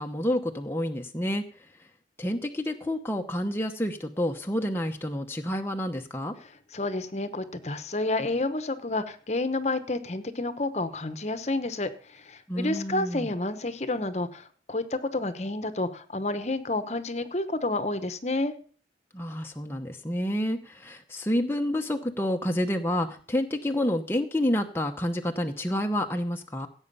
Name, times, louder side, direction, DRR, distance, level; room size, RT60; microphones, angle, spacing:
voice 1, 0.0-1.4 2.2-6.3 12.5-13.3 19.1-26.7, left 1 dB, 15° left, 3 dB, 0.9 m, -29 dB
voice 2, 6.7-18.5, left 2 dB, 40° left, 12 dB, 1.0 m, -30 dB
16.5 x 8.1 x 5.5 m, 0.44 s
head